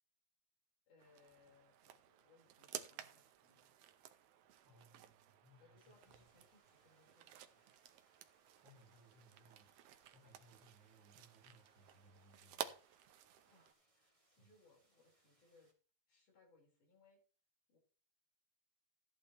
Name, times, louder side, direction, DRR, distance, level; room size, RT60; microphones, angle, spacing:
voice 1, 0.9-3.7 5.6-7.7 13.5-15.7 16.1-17.2 17.7-17.8, left 3 dB, 70° left, -1 dB, 5.7 m, -71 dB
sound 1, 1.0-13.7, right 11 dB, 75° right, 1.5 m, -54 dB
voice 2, 4.6-6.4 8.6-12.7 14.4-14.5, right 1 dB, 35° right, 1 dB, 2.9 m, -67 dB
sound 2, 5.8-15.7, right 2 dB, 15° right, 1.6 m, -79 dB
14.0 x 9.9 x 3.0 m, 0.39 s
omnidirectional pair, 3.7 m